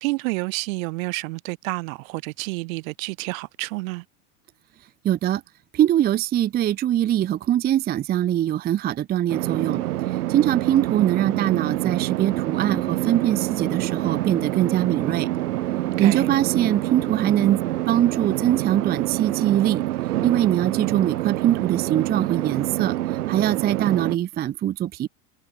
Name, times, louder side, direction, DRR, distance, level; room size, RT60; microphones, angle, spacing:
voice 1, 0.0-4.0 16.0-16.3, right 26 dB, 60° right, 2.5 m, -29 dB
voice 2, 5.0-5.4 5.7-9.8 10.1-15.3 16.0-17.6 17.9-19.8 20.2-25.1, right 12 dB, 20° right, 0.6 m, -22 dB
sound 1, 9.3-24.2, right 15 dB, 80° right, 2.4 m, -26 dB
supercardioid pair, 130°, 46 cm